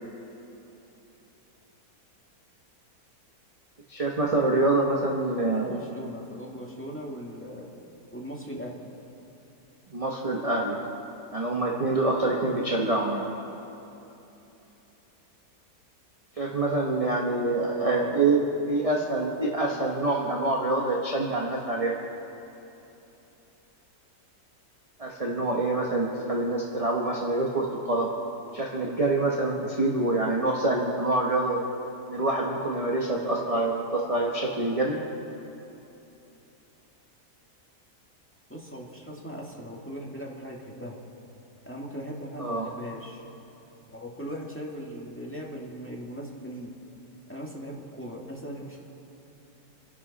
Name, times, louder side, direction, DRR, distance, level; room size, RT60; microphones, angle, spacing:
voice 1, 3.9-5.8 9.9-10.8 11.3-13.2 16.4-22.0 25.0-28.1 28.5-31.6 32.1-35.0 42.4-42.7, right 2 dB, 25° right, -1 dB, 1.2 m, -26 dB
voice 2, 5.4-7.7 8.1-8.9 17.8-18.1 38.5-41.0 41.7-43.2 43.9-46.7 47.3-48.8, equal, 5° left, -3 dB, 2.0 m, -39 dB
28.0 x 11.0 x 4.2 m, 3.0 s
omnidirectional pair, 1.8 m